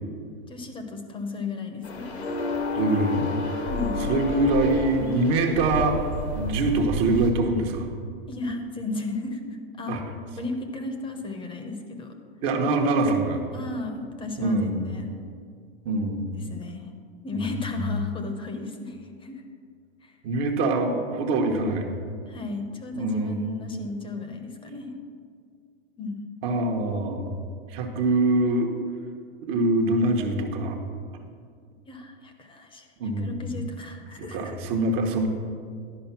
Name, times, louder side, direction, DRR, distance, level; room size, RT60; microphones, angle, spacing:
voice 1, 0.5-2.1 3.7-4.0 8.3-9.4 9.7-10.0 10.4-12.1 13.5-15.1 16.3-16.9 17.2-19.4 20.0-20.2 22.3-24.9 26.0-26.2 31.9-32.9 33.2-34.6, left 3 dB, 15° left, 6 dB, 0.8 m, -34 dB
sound 1, 1.8-7.3, left 2 dB, 85° left, 1.7 m, -30 dB
voice 2, 2.7-3.3 4.1-6.0 6.3-7.9 9.9-10.0 12.4-13.4 14.4-14.8 15.8-16.3 17.3-17.6 20.2-21.9 22.9-23.7 26.4-27.3 27.7-28.7 29.4-30.8 33.0-33.5 34.3-35.3, right 2 dB, 45° right, 2 dB, 1.1 m, -24 dB
11.0 x 5.1 x 5.8 m, 2.2 s
hypercardioid pair, 130°, 32 cm